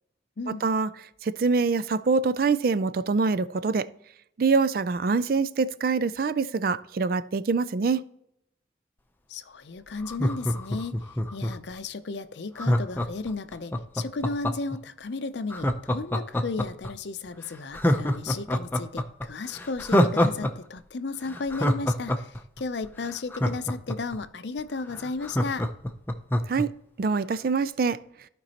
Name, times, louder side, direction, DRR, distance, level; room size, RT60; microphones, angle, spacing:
voice 1, 1.2-3.9 4.4-8.0 26.5-26.7 27.0-28.0, right 4 dB, 50° right, 0.4 m, -24 dB
voice 2, 9.3-11.0 11.3-25.7, left 3 dB, 70° left, 0.6 m, -34 dB
Laughter, 10.0-11.7 12.6-14.8 15.5-16.9 17.3-17.4 17.7-20.5 20.8-20.9 21.3-24.2 24.6-24.7 24.9-26.6 27.0-27.1, left 1 dB, 10° left, 0.5 m, -25 dB
15.0 x 5.2 x 2.9 m
head